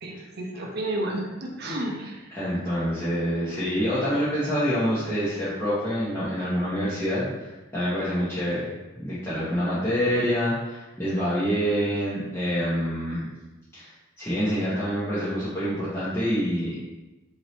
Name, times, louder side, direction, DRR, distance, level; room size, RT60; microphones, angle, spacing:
voice 1, 0.0-2.3, right 1 dB, 50° right, 0 dB, 0.6 m, -31 dB
voice 2, 2.3-8.7 8.9-13.3 13.7-13.9 14.2-16.8, equal, 10° left, -12 dB, 0.8 m, -26 dB
4.6 x 2.7 x 3.1 m, 1.1 s
head